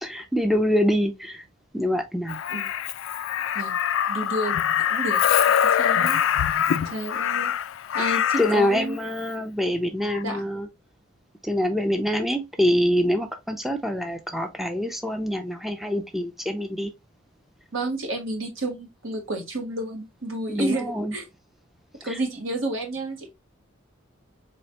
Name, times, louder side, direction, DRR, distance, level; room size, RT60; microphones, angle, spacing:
voice 1, 0.0-1.4 1.7-2.4 8.1-10.7 11.4-16.9 20.5-21.1 22.1-22.2, equal, ahead, 0.4 m, -25 dB
Crow, 2.3-8.6 10.0-10.2, left 9 dB, 75° left, 0.3 m, -24 dB
voice 2, 4.1-4.6 4.9-5.3 5.8-6.2 6.9-7.5 7.9-9.0 10.2-10.4 17.7-21.3 22.0-23.3, right 1 dB, 75° right, 1.5 m, -30 dB
3.9 x 3.1 x 2.8 m
head